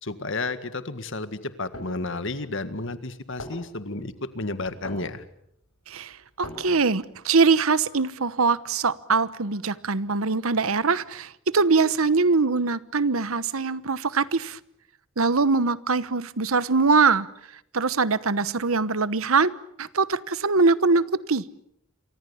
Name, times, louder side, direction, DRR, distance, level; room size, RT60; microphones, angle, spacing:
voice 1, 0.0-5.2, left 2 dB, 60° left, 12 dB, 1.9 m, -32 dB
sound 1, 1.5-2.0 2.7-2.8 3.1-3.2 3.4-4.0 4.6-5.2 5.6-5.7 5.9-7.0, left 1 dB, 80° left, 6.7 m, -40 dB
voice 2, 5.9-14.6 15.2-17.3 17.7-19.5 19.8-21.4, right 4 dB, 75° right, 17 dB, 1.1 m, -22 dB
28.0 x 24.5 x 7.2 m, 0.74 s
head